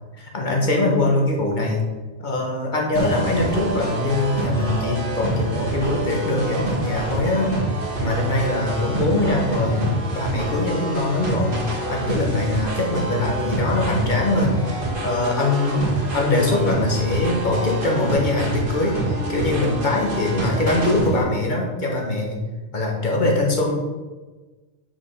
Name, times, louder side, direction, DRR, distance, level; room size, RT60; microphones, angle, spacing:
voice 1, 0.2-1.8 2.2-7.5 8.0-9.9 10.1-15.8 16.1-22.4 22.7-23.7, left 2 dB, 40° left, 0 dB, 1.4 m, -22 dB
sound 1, 2.9-21.2, right 2 dB, 45° right, 1.5 m, -27 dB
5.9 x 5.2 x 5.6 m, 1.3 s
omnidirectional pair, 1.3 m